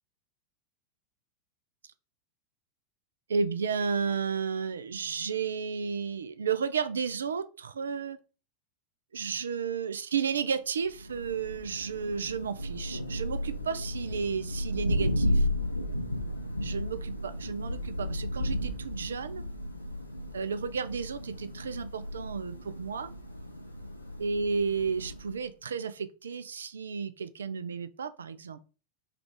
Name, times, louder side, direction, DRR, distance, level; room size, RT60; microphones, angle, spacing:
voice 1, 3.3-8.2 9.1-15.5 16.6-19.4 20.3-23.1 24.2-28.6, right 6 dB, 70° right, 0.3 m, -32 dB
Thunder, 10.8-25.4, equal, 85° left, 0.5 m, -34 dB
3.5 x 2.4 x 3.4 m
figure-of-eight pair, 90°, 0 cm